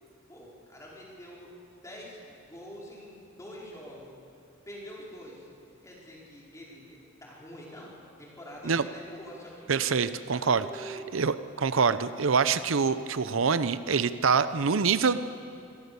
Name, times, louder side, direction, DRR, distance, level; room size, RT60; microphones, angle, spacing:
voice 1, 0.3-1.5 1.8-4.1 4.7-5.5 5.8-7.9 8.2-11.0, equal, 15° left, -4 dB, 4.7 m, -46 dB
voice 2, 9.7-10.7 11.1-15.2, right 5 dB, 80° right, 13 dB, 0.7 m, -25 dB
25.5 x 17.5 x 7.0 m, 2.5 s
head